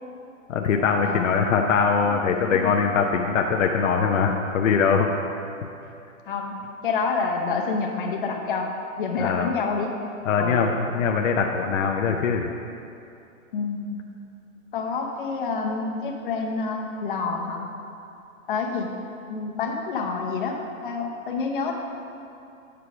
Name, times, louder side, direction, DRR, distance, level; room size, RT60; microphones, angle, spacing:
voice 1, 0.5-5.4 9.2-9.5 10.2-12.5, left 5 dB, 65° left, 1 dB, 0.7 m, -22 dB
voice 2, 1.0-1.5 2.5-2.7 6.3-9.9 10.4-10.6 13.5-14.0 14.7-17.7 18.5-18.9 19.3-21.7, left 4 dB, 40° left, 1 dB, 0.9 m, -28 dB
8.6 x 4.7 x 4.9 m, 2.7 s
hypercardioid pair, 165°, 41 cm